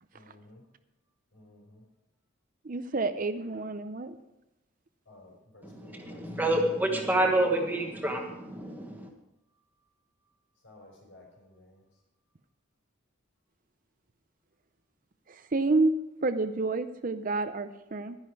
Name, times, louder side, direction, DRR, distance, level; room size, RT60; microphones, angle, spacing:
voice 1, 0.1-0.7 1.3-1.8 5.0-6.5 9.5-9.9 10.2-12.0, left 1 dB, 70° left, -1 dB, 5.1 m, -56 dB
voice 2, 2.6-4.2 15.3-18.2, right 3 dB, 40° right, 11 dB, 0.6 m, -29 dB
voice 3, 5.6-9.1, right 1 dB, 10° right, 1 dB, 1.3 m, -28 dB
11.5 x 11.0 x 4.8 m, 0.92 s
head